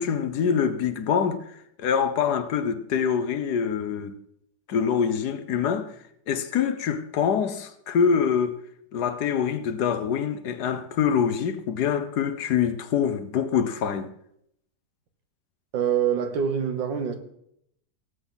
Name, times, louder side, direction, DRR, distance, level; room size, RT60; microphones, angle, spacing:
voice 1, 0.0-1.4 1.8-4.2 4.7-5.9 6.3-8.6 8.9-14.1, left 7 dB, 65° left, 1.3 m, -25 dB
voice 2, 15.7-17.2, right 8 dB, 90° right, 2.0 m, -25 dB
17.5 x 7.8 x 3.9 m
omnidirectional pair, 1.9 m